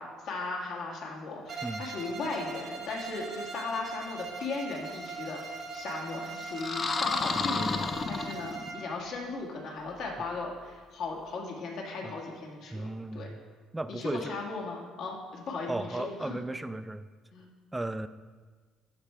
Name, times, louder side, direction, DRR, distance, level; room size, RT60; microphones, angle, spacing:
voice 1, 0.0-13.3 14.0-16.4 17.3-17.5, left 3 dB, 70° left, -1 dB, 1.9 m, -37 dB
Bowed string instrument, 1.5-9.0, right 4 dB, 50° right, 1.1 m, -40 dB
sound 1, 6.5-8.8, left 4 dB, 40° left, 0.5 m, -31 dB
voice 2, 7.3-8.1 12.0-12.2 12.7-13.4 13.7-14.3 15.7-17.1 17.7-18.1, right 2 dB, 15° right, 12 dB, 0.4 m, -36 dB
12.0 x 4.4 x 3.5 m, 1.4 s
supercardioid pair, 65°, 0 cm